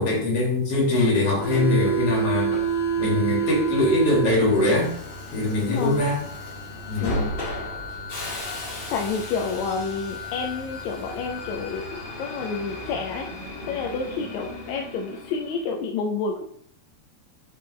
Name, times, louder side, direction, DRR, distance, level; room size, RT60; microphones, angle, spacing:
voice 1, 0.0-2.5 3.0-4.9 5.3-6.2 6.9-7.1, left 2 dB, 50° left, -4 dB, 3.2 m, -22 dB
Subway metro underground, 1.4-15.7, right 4 dB, 30° left, 1.8 m, -30 dB
voice 2, 5.7-6.0 7.0-7.3 8.9-13.3 13.7-16.5, left 5 dB, 75° left, 1 dB, 1.8 m, -29 dB
6.8 x 5.3 x 3.3 m, 0.67 s
omnidirectional pair, 3.5 m